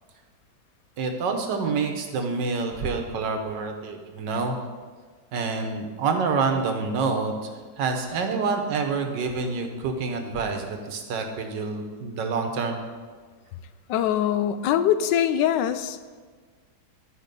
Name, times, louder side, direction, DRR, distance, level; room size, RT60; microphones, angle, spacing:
voice 1, 1.0-4.6 5.3-7.3 7.8-12.8, right 4 dB, 85° right, 4 dB, 1.6 m, -27 dB
voice 2, 13.9-16.2, left 10 dB, 85° left, 12 dB, 1.2 m, -23 dB
11.0 x 5.0 x 5.2 m, 1.5 s
omnidirectional pair, 1.9 m